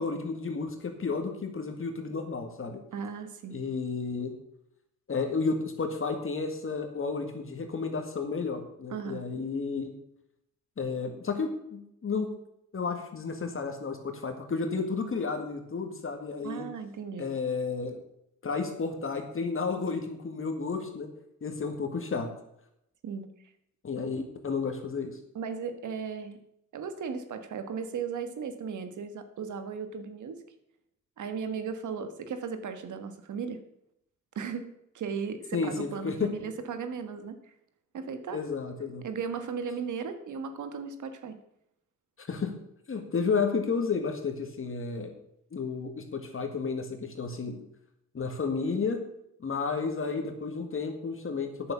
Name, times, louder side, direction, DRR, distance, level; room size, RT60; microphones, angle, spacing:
voice 1, 0.0-2.8 3.5-4.3 5.1-9.9 10.8-12.3 12.7-16.7 17.2-18.0 18.4-21.1 21.4-22.3 23.8-25.2 35.5-36.5 38.3-39.1 42.2-42.5 42.9-45.1 45.5-47.6 48.1-49.0 49.4-51.7, left 4 dB, 45° left, 5 dB, 1.9 m, -32 dB
voice 2, 2.9-3.6 8.9-9.2 16.4-17.3 23.0-23.3 25.3-26.4 26.7-30.4 31.2-33.6 34.3-37.5 37.9-38.4 39.0-41.4, right 6 dB, 75° right, 9 dB, 1.5 m, -36 dB
9.5 x 7.0 x 7.0 m, 0.79 s
cardioid pair, 80°, 30 cm